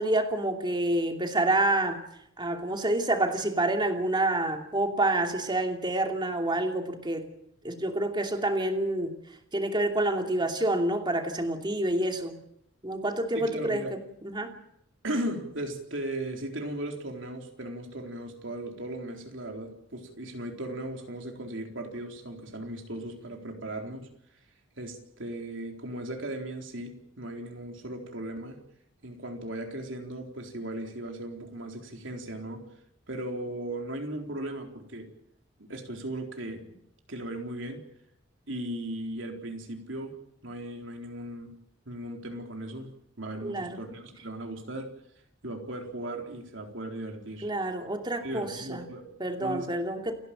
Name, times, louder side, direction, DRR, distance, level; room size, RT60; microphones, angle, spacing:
voice 1, 0.0-2.0 2.4-7.3 7.6-9.1 9.5-12.4 12.8-14.0 14.2-14.5 43.4-43.8 47.4-48.9 49.2-50.1, right 1 dB, 25° right, 4 dB, 2.8 m, -28 dB
voice 2, 13.3-13.9 15.0-24.1 24.8-28.6 29.0-32.7 33.1-35.1 35.6-36.7 37.1-37.8 38.5-40.2 40.4-41.5 41.9-44.9 45.4-47.5 48.2-49.7, right 1 dB, 70° right, 3 dB, 4.0 m, -37 dB
29.0 x 11.5 x 9.0 m, 0.76 s
head